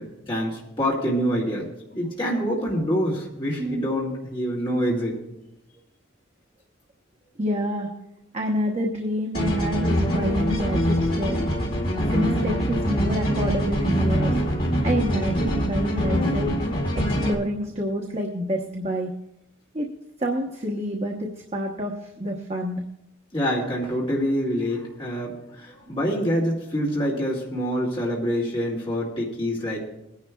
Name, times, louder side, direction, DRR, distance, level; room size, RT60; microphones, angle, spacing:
voice 1, 0.0-1.7 1.9-5.2 23.3-29.8, equal, 25° left, -5 dB, 2.1 m, -26 dB
voice 2, 7.4-7.9 8.3-11.4 12.1-14.4 14.8-16.5 16.9-19.1 19.7-19.9 20.2-21.9 22.2-22.8, equal, 35° right, 0 dB, 1.0 m, -27 dB
sound 1, 9.3-17.3, equal, 50° left, 2.3 m, -24 dB
21.0 x 10.5 x 2.3 m, 0.86 s
head